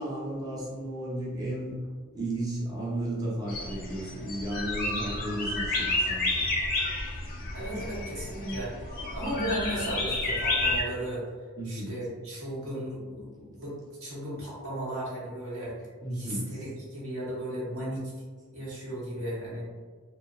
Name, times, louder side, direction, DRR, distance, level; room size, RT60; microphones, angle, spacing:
voice 1, 0.0-1.8 2.1-6.4 7.4-7.5 11.6-11.9 16.0-16.6, right 1 dB, 15° right, -6 dB, 0.6 m, -34 dB
sound 1, 3.5-10.8, left 2 dB, 40° left, 0.5 m, -31 dB
voice 2, 7.5-8.7 9.1-11.2 11.6-15.9 16.1-18.1 18.5-19.6, right 1 dB, 65° right, -7 dB, 0.9 m, -35 dB
2.8 x 2.0 x 2.4 m, 1.5 s
head